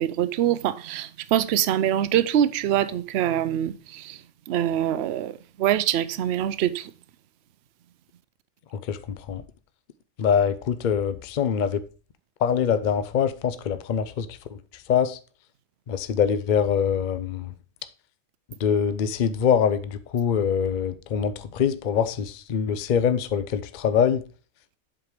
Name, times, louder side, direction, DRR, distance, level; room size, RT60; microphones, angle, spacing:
voice 1, 0.0-4.2 4.5-6.9, right 11 dB, 60° right, 0.7 m, -24 dB
voice 2, 8.7-9.4 10.2-11.8 12.4-14.6 14.9-15.2 15.9-17.5 18.6-24.2, left 7 dB, 65° left, 0.4 m, -24 dB
7.9 x 4.9 x 4.8 m
omnidirectional pair, 1.5 m